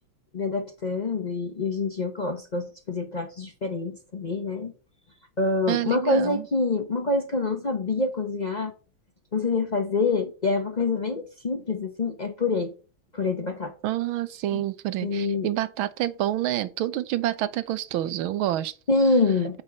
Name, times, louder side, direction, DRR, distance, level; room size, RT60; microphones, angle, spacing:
voice 1, 0.3-4.7 5.4-8.7 9.3-12.7 13.1-13.7 14.5-14.6 15.0-15.5 18.9-19.6, left 3 dB, 80° left, 0.4 m, -26 dB
voice 2, 5.7-6.5 13.8-18.7, right 13 dB, 75° right, 1.6 m, -28 dB
8.9 x 4.3 x 5.4 m
omnidirectional pair, 2.4 m